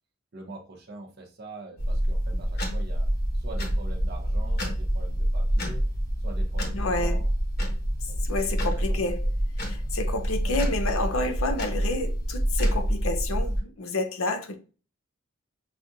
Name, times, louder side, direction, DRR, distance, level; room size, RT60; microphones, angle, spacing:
voice 1, 0.3-3.1 3.3-5.8 6.2-7.3 8.0-8.5 8.8-8.9 10.4-10.6, right 2 dB, 45° right, 0.7 m, -44 dB
sound 1, 1.8-13.6, equal, 45° left, 1.1 m, -27 dB
voice 2, 6.7-7.2 8.0-9.2 9.6-14.6, left 2 dB, 70° left, 0.6 m, -30 dB
6.1 x 2.4 x 2.6 m
head